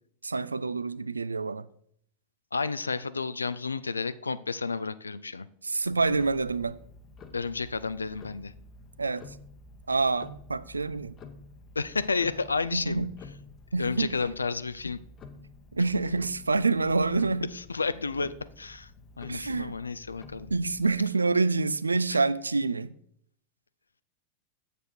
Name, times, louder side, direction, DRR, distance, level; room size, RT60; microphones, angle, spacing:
voice 1, 0.2-1.7 5.6-6.8 9.0-9.2 9.9-11.1 12.7-13.1 13.7-14.1 15.7-17.5 19.3-19.8 20.5-22.9, right 3 dB, 80° right, 0.3 m, -27 dB
voice 2, 2.5-5.5 7.3-8.5 11.8-13.1 13.8-15.0 17.5-18.9 19.2-20.5 22.1-22.2, left 4 dB, 75° left, 0.3 m, -31 dB
Tick-tock, 5.8-21.1, left 3 dB, 30° left, 0.8 m, -50 dB
7.7 x 6.7 x 4.4 m
figure-of-eight pair, 90°, 0 cm